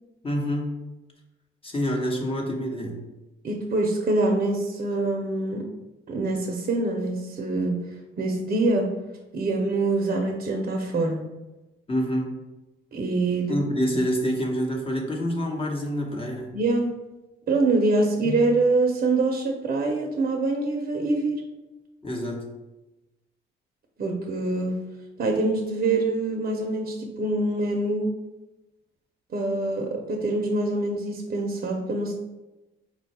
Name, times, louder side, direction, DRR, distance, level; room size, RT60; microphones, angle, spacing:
voice 1, 0.2-0.7 1.6-3.0 11.9-12.3 13.5-16.6 22.0-22.5, equal, 30° left, -1 dB, 1.0 m, -27 dB
voice 2, 3.4-5.7 6.1-8.9 9.3-11.3 12.9-13.6 16.5-16.9 17.5-21.4 24.0-24.8 25.2-28.1 29.3-32.1, right 2 dB, 45° right, 2 dB, 0.6 m, -25 dB
4.2 x 2.2 x 4.1 m, 1.0 s
cardioid pair, 90°, 20 cm